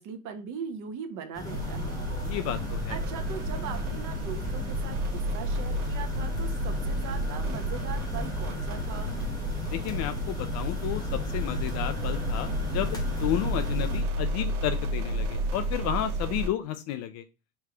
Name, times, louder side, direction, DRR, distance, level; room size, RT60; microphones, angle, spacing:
voice 1, 0.0-2.1 2.9-9.2, right 7 dB, 45° right, 8 dB, 0.9 m, -40 dB
sound 1, 1.3-14.0, left 3 dB, 10° left, 1.0 m, -37 dB
sound 2, 1.4-16.5, equal, 85° right, 0.8 m, -31 dB
voice 2, 2.2-3.0 9.7-11.0 11.3-17.2, left 11 dB, 40° left, 9 dB, 0.4 m, -32 dB
3.4 x 3.2 x 3.5 m, 0.31 s
supercardioid pair, 115°, 43 cm